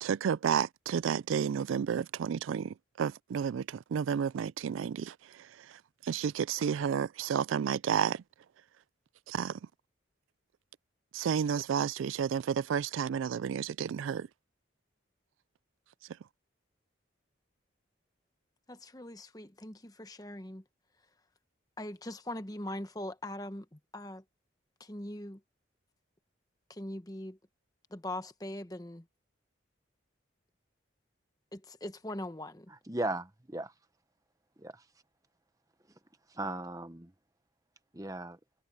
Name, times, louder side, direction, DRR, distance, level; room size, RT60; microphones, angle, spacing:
voice 1, 0.0-8.2 9.3-9.6 11.1-14.3, right 7 dB, 80° right, 0.3 m, -31 dB
voice 2, 18.7-20.6 21.8-24.2 24.8-25.4 26.7-27.4 27.9-29.0 31.5-32.7, left 1 dB, 20° left, 1.1 m, -41 dB
voice 3, 32.9-33.7 34.6-34.8 36.3-37.1 37.9-38.4, right 2 dB, 15° right, 1.1 m, -36 dB
head